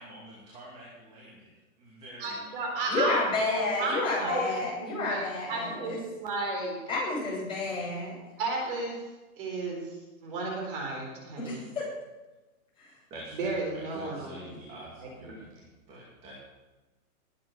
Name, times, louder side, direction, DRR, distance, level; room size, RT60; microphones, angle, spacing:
voice 1, 0.0-1.5 1.8-3.0 13.1-13.6 13.9-16.4, right 1 dB, 15° right, -4 dB, 2.4 m, -47 dB
voice 2, 2.2-6.8 8.4-9.0 9.4-11.6 13.3-15.4, right 2 dB, 35° right, 0 dB, 4.3 m, -33 dB
voice 3, 2.9-6.0 6.9-8.2 11.4-11.9, left 3 dB, 10° left, -7 dB, 7.1 m, -30 dB
20.5 x 8.5 x 6.8 m, 1.1 s
hypercardioid pair, 175°, 44 cm